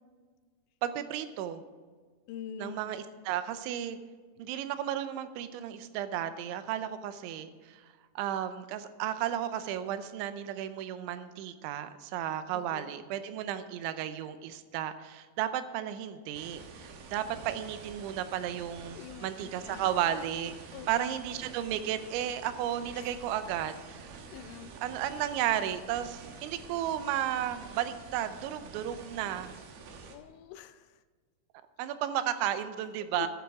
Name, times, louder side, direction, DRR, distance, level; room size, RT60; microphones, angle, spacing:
voice 1, 0.8-1.6 2.6-4.0 4.4-7.5 8.2-24.1 24.8-29.5 31.8-33.3, right 11 dB, 90° right, 11 dB, 3.1 m, -33 dB
voice 2, 2.3-2.9 12.5-12.9 19.0-19.9 20.7-21.3 22.9-23.2 24.3-24.8 30.1-31.0 33.0-33.3, left 9 dB, 85° left, 11 dB, 2.9 m, -45 dB
sound 1, 16.3-30.2, right 4 dB, 65° right, 2.8 m, -48 dB
13.5 x 12.5 x 3.6 m, 1.5 s
omnidirectional pair, 5.3 m